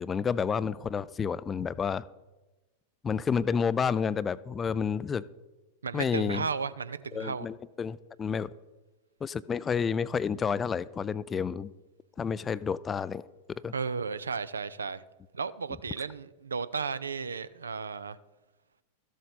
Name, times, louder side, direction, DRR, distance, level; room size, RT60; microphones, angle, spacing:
voice 1, 0.0-2.0 3.0-5.2 5.9-6.5 7.1-8.5 9.2-11.7 12.2-13.2 13.6-13.7, left 6 dB, 20° left, 0.3 m, -30 dB
voice 2, 5.8-7.5 13.7-15.0 15.3-18.2, right 5 dB, 75° right, 0.4 m, -34 dB
13.5 x 7.5 x 4.1 m
figure-of-eight pair, 90°, 0 cm